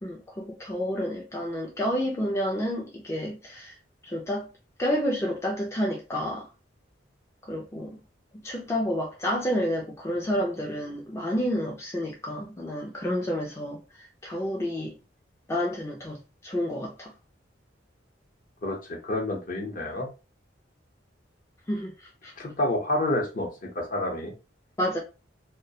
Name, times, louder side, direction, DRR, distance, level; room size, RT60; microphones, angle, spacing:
voice 1, 0.0-3.7 4.0-4.4 4.8-6.5 7.5-7.9 8.4-13.8 14.2-14.9 15.5-17.1 21.7-21.9 22.2-22.3 24.8-25.0, equal, 15° left, 0.3 m, -29 dB
voice 2, 18.6-20.1 22.4-24.3, left 1 dB, 45° left, 0.7 m, -29 dB
2.3 x 2.1 x 2.7 m
head